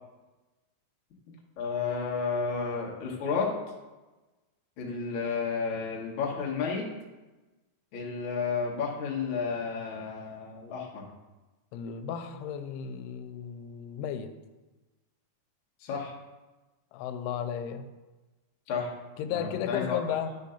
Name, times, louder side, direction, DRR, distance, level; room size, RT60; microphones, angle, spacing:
voice 1, 1.6-3.5 4.8-6.9 7.9-11.0 15.8-16.1 18.7-18.9 19.3-20.0, left 5 dB, 65° left, -2 dB, 1.2 m, -31 dB
voice 2, 11.7-14.3 16.9-17.9 19.2-20.3, left 8 dB, 90° left, 9 dB, 2.6 m, -34 dB
9.5 x 3.8 x 5.7 m, 1.1 s
omnidirectional pair, 4.5 m